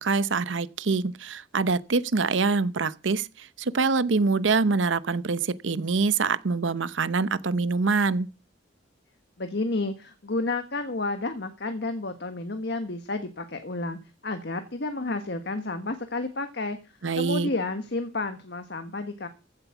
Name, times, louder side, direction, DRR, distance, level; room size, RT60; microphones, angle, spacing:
voice 1, 0.0-8.3 17.0-17.5, right 4 dB, 80° right, 0.8 m, -25 dB
voice 2, 9.4-16.8 17.1-19.3, left 2 dB, 60° left, 1.4 m, -31 dB
15.0 x 8.1 x 5.9 m
head